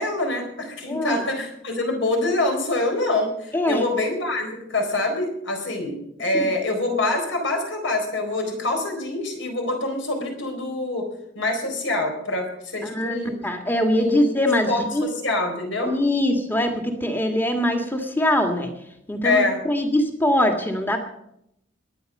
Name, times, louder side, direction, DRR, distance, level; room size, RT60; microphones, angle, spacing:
voice 1, 0.0-11.1 11.4-13.4 13.9-14.4 14.7-15.9 19.2-19.6, left 2 dB, 75° left, 3 dB, 4.1 m, -25 dB
voice 2, 0.9-1.2 3.5-3.8 6.3-6.5 12.8-15.1 15.8-18.7 19.1-21.0, left 1 dB, 10° left, 4 dB, 1.8 m, -23 dB
21.5 x 9.0 x 5.4 m, 0.77 s
head